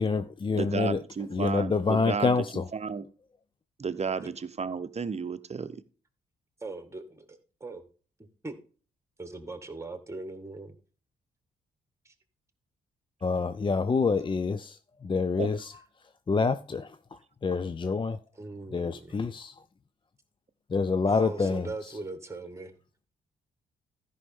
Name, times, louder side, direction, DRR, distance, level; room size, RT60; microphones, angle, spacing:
voice 1, 0.0-1.0 1.3-2.6 13.2-14.8 15.0-15.7 16.3-16.9 17.4-18.2 18.7-19.5 20.7-21.7, left 4 dB, 25° left, 0.5 m, -27 dB
voice 2, 0.5-2.4 2.7-3.0 3.8-5.8 15.4-15.5, right 5 dB, 35° right, 0.9 m, -32 dB
voice 3, 6.6-7.8 8.4-8.5 9.2-10.8 12.1-12.2 18.3-19.3 21.0-22.7, right 3 dB, 15° right, 1.8 m, -40 dB
13.5 x 5.5 x 3.6 m
hypercardioid pair, 45°, 20 cm